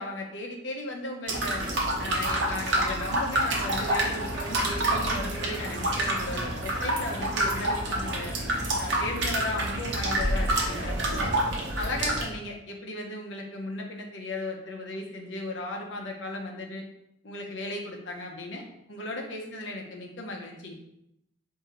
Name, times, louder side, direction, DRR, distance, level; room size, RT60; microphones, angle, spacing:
voice 1, 0.0-1.6 2.0-8.3 8.8-11.4 11.7-16.8 17.2-20.7, left 2 dB, 70° left, 1 dB, 0.8 m, -36 dB
sound 1, 1.3-12.2, right 1 dB, 65° right, 0.9 m, -28 dB
3.8 x 2.8 x 4.2 m, 0.81 s
head